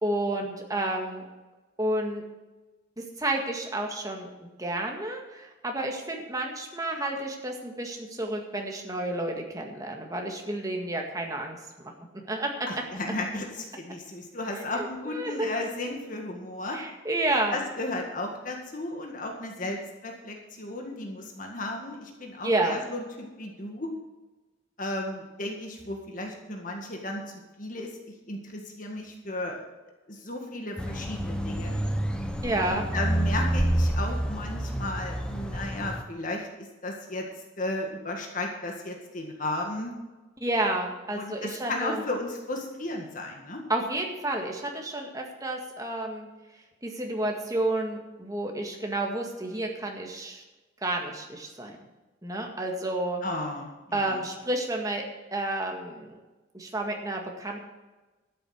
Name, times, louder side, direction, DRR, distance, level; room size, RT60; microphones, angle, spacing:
voice 1, 0.0-1.3 1.8-2.2 3.0-4.3 4.6-11.6 12.3-12.5 14.8-15.5 16.7-17.6 22.4-22.8 32.4-32.8 40.4-42.0 43.7-46.3 46.8-50.4 50.8-51.7 52.2-53.2 53.9-55.0 55.3-56.2 56.5-57.7, right 1 dB, 20° right, 1 dB, 1.8 m, -30 dB
voice 2, 12.7-16.8 17.5-23.9 24.8-27.2 27.6-27.9 28.3-29.7 30.1-31.8 32.7-36.5 36.8-37.3 37.6-39.9 41.1-43.6 53.2-54.2, left 2 dB, 40° left, 1 dB, 1.8 m, -34 dB
sound 1, 30.8-36.0, right 1 dB, 5° left, 0.9 m, -28 dB
12.5 x 7.9 x 6.4 m, 1.2 s
head